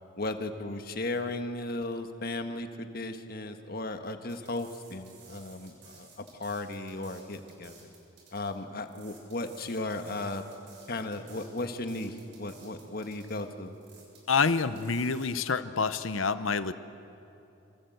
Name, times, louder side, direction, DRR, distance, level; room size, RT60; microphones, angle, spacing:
voice 1, 0.2-7.7 8.3-10.4 10.9-13.7, left 2 dB, 50° left, 6 dB, 1.6 m, -36 dB
sound 1, 4.3-15.3, right 4 dB, 60° right, 6.8 m, -56 dB
voice 2, 14.3-16.7, left 5 dB, 80° left, 12 dB, 0.9 m, -27 dB
27.0 x 26.0 x 8.0 m, 2.9 s
head